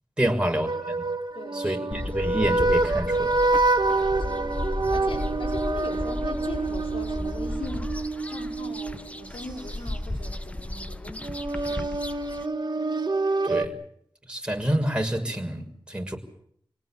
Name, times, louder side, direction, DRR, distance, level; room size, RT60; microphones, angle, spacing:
voice 1, 0.2-1.0 1.5-3.3 13.4-13.8 14.3-16.2, right 1 dB, 10° right, 2 dB, 6.0 m, -27 dB
Flute - mystical vibe, 0.6-9.7 11.2-13.6, right 3 dB, 50° right, 2.2 m, -27 dB
voice 2, 1.3-1.8 4.2-4.5 4.9-8.0 8.3-11.9, left 2 dB, 80° left, 2 dB, 5.7 m, -40 dB
sound 1, 1.9-12.5, left 1 dB, 15° left, 1.6 m, -34 dB
28.0 x 18.5 x 7.6 m, 0.69 s
cardioid pair, 45°, 9 cm